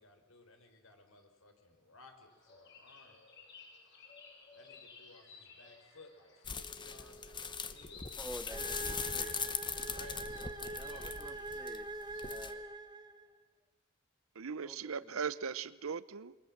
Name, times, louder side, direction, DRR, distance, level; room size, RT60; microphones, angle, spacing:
voice 1, 0.0-3.2 4.5-8.5 8.8-11.2, left 3 dB, 75° left, 5 dB, 4.3 m, -59 dB
sound 1, 2.3-12.6, left 4 dB, 60° left, 6.4 m, -58 dB
sound 2, 6.4-12.5, left 6 dB, 20° left, 1.0 m, -40 dB
voice 2, 8.2-8.8 9.1-9.4 10.8-11.9 12.2-12.6 14.6-15.1, equal, ahead, 7 dB, 0.8 m, -49 dB
sound 3, 8.5-13.4, right 2 dB, 20° right, 1.3 m, -44 dB
voice 3, 14.4-16.4, right 6 dB, 80° right, 18 dB, 0.7 m, -39 dB
28.0 x 23.0 x 7.3 m, 1.2 s
head